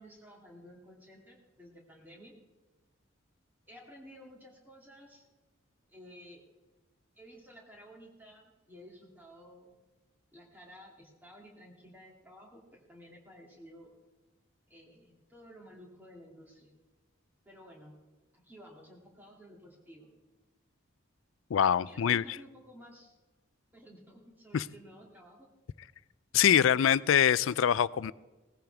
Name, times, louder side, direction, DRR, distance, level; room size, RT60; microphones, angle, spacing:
voice 1, 0.0-2.4 3.7-5.2 5.9-6.4 7.2-9.8 10.3-13.9 14.7-16.7 17.5-17.9 18.3-20.1 21.9-23.2 23.7-25.5, equal, 10° right, -2 dB, 2.5 m, -53 dB
voice 2, 21.5-22.2 24.5-24.7 26.3-28.1, left 9 dB, 75° left, 19 dB, 0.4 m, -24 dB
18.0 x 15.0 x 3.5 m, 1.1 s
head